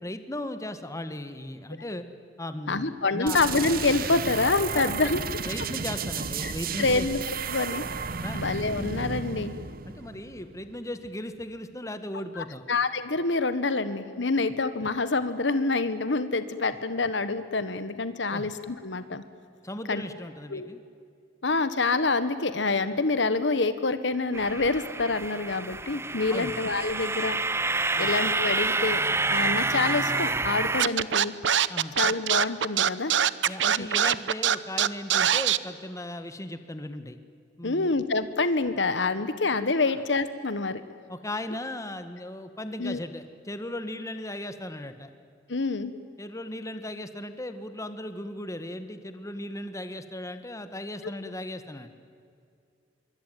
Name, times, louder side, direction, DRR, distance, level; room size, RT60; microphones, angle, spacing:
voice 1, 0.0-2.0 2.4-3.4 4.7-7.1 8.2-8.4 9.9-12.6 18.3-18.5 19.6-20.8 26.3-26.5 27.9-28.1 31.7-31.9 33.5-37.2 37.6-37.9 39.8-39.9 41.1-45.1 46.2-51.9, left 1 dB, 15° left, 9 dB, 1.5 m, -37 dB
voice 2, 2.7-5.2 6.4-7.8 8.3-9.5 12.4-19.2 19.9-20.0 20.5-20.7 21.4-27.4 28.0-29.0 29.3-31.3 32.0-33.1 33.8-33.9 37.6-40.8 42.8-43.0 45.5-45.9, left 3 dB, 70° left, 12 dB, 1.4 m, -27 dB
sound 1, 3.3-10.8, right 5 dB, 55° right, 1.0 m, -33 dB
sound 2, 24.3-30.8, right 3 dB, 15° right, 0.6 m, -28 dB
Scratching (performance technique), 30.8-35.6, right 9 dB, 75° right, 0.8 m, -22 dB
25.5 x 23.5 x 9.3 m, 2.3 s
head